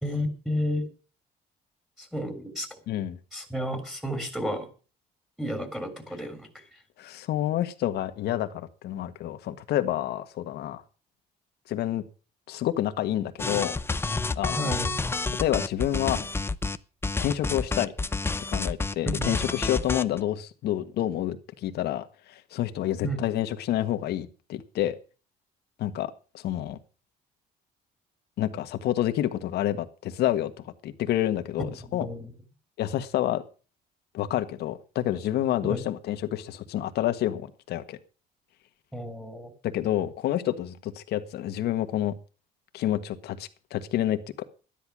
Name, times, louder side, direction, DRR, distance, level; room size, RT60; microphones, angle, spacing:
voice 1, 0.0-0.9 2.0-2.7 3.3-4.7 5.4-6.8 14.6-15.0 19.0-19.4 23.0-23.2 31.6-32.3 35.6-35.8 38.9-39.5, equal, 5° right, 5 dB, 3.3 m, -32 dB
voice 2, 2.9-3.2 7.0-10.8 11.7-12.0 12.5-13.7 14.3-14.8 15.4-16.3 17.2-17.9 18.5-25.0 25.8-26.8 28.4-32.0 32.8-33.4 34.1-38.0 39.6-42.1 42.7-44.4, left 12 dB, 75° left, 9 dB, 1.5 m, -28 dB
sound 1, 13.4-16.8 17.0-20.2, left 3 dB, 15° left, 0.7 m, -29 dB
12.5 x 10.5 x 6.1 m, 0.37 s
cardioid pair, 110°, 17 cm